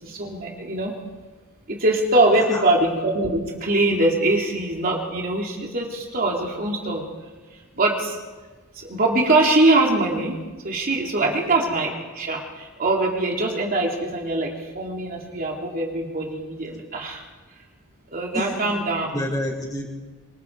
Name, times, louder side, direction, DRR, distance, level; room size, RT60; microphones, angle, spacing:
voice 1, 0.0-0.9 1.7-7.0 7.7-8.2 8.8-10.4 10.6-17.2 18.1-19.1, right 2 dB, 40° right, -1 dB, 3.1 m, -22 dB
voice 2, 2.3-2.6 11.2-11.5 18.3-18.8 19.1-19.9, left 1 dB, 15° left, 0 dB, 5.3 m, -30 dB
26.0 x 25.0 x 4.7 m, 1.3 s
head